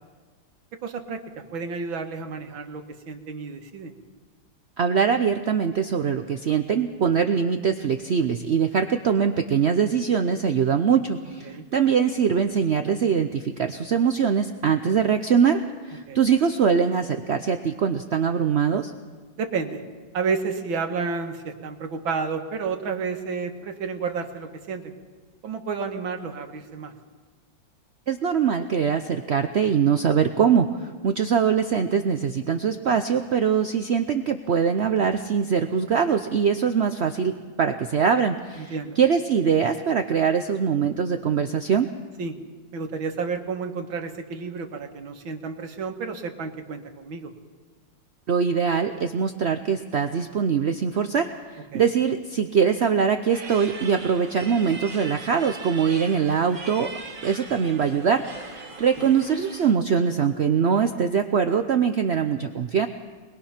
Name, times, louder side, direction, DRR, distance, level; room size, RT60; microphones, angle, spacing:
voice 1, 0.8-1.2 1.5-3.9 11.4-11.7 16.1-16.2 19.4-19.8 20.1-24.9 25.4-26.9 38.5-39.0 42.2-42.4 42.7-47.3 51.7-51.9 59.0-59.2, right 5 dB, 90° right, 5 dB, 2.3 m, -31 dB
voice 2, 4.8-18.9 28.1-41.9 48.3-56.9 57.2-62.9, right 7 dB, 60° right, 7 dB, 0.6 m, -22 dB
sound 1, 53.3-59.7, right 3 dB, 30° right, 1.4 m, -40 dB
22.5 x 21.5 x 5.8 m, 1.4 s
omnidirectional pair, 2.1 m